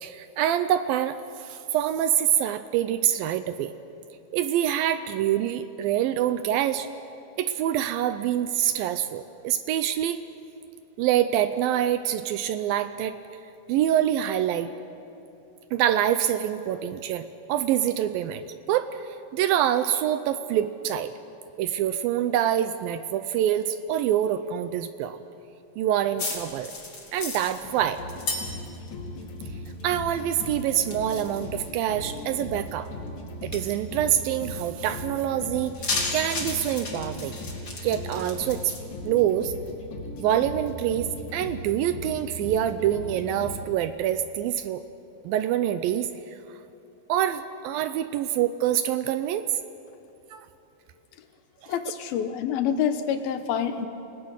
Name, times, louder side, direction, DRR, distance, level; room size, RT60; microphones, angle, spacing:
voice 1, 0.0-3.7 4.3-6.9 7.4-10.2 11.0-13.2 13.7-14.7 15.7-21.1 21.6-25.2 25.8-26.7 27.1-28.0 29.8-32.9 33.4-35.8 36.1-37.4 37.8-38.7 39.0-39.5 40.2-44.8 45.3-46.1 47.1-49.5 50.3-50.4 51.6-51.7, right 11 dB, 80° right, 11 dB, 2.2 m, -26 dB
sound 1, 26.2-28.9 29.2-30.1 30.4-32.4 32.9-33.0 33.5-33.7 35.6-38.8, left 3 dB, 30° left, 3.2 m, -34 dB
sound 2, 28.0-43.7, left 1 dB, 55° left, 3.5 m, -38 dB
voice 2, 51.7-53.9, left 8 dB, 75° left, 9 dB, 2.7 m, -27 dB
29.0 x 18.0 x 6.5 m, 2.8 s
omnidirectional pair, 4.5 m